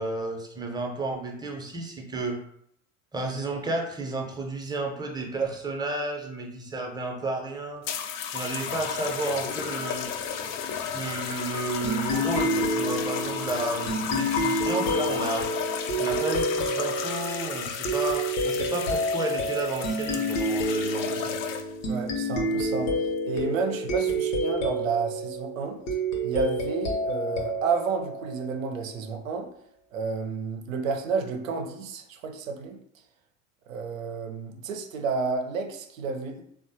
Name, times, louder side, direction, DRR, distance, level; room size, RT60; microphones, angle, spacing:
voice 1, 0.0-2.4 3.1-7.8 8.3-10.1 10.9-15.5 16.0-21.4, right 2 dB, 10° right, 0.6 m, -32 dB
sound 1, 7.8-21.9 22.7-23.1, left 7 dB, 45° left, 0.4 m, -33 dB
sound 2, 11.8-29.0, equal, 70° left, 0.8 m, -29 dB
voice 2, 21.8-25.8 26.2-29.5 29.9-32.8 33.7-36.4, right 5 dB, 85° right, 0.6 m, -31 dB
3.3 x 2.1 x 2.7 m
hypercardioid pair, 70°, 39 cm